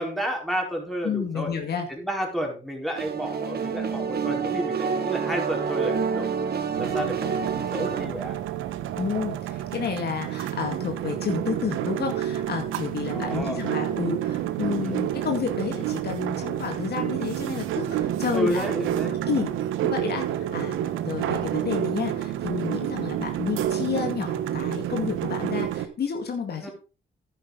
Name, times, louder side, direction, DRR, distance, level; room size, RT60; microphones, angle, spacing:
voice 1, 0.0-1.5 1.9-6.3 6.8-8.4 13.1-13.6 14.8-15.0 18.3-19.2 26.6-26.7, equal, ahead, 0 dB, 4.4 m, -31 dB
voice 2, 1.0-1.9 9.0-18.7 19.0-19.5 19.8-26.7, left 6 dB, 55° left, 4 dB, 2.1 m, -30 dB
sound 1, 3.0-8.0, right 6 dB, 55° right, 1.7 m, -28 dB
sound 2, 6.7-25.9, right 11 dB, 85° right, 1.1 m, -29 dB
10.5 x 10.0 x 3.9 m, 0.35 s
cardioid pair, 90°, 20 cm